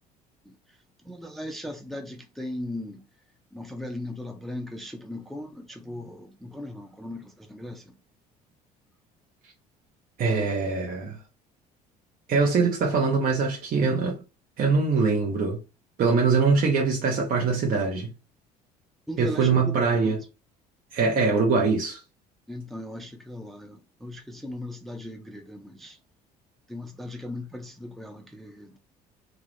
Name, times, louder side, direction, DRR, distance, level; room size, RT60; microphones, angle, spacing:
voice 1, 1.1-3.0 3.5-7.9 19.1-20.1 22.5-26.0 26.7-28.8, left 1 dB, ahead, 0.4 m, -38 dB
voice 2, 10.2-11.2 12.3-14.2 14.6-15.6 16.0-18.1 19.2-20.2 20.9-22.0, right 4 dB, 45° right, 0.7 m, -23 dB
2.3 x 2.0 x 3.1 m
hypercardioid pair, 60°, 20 cm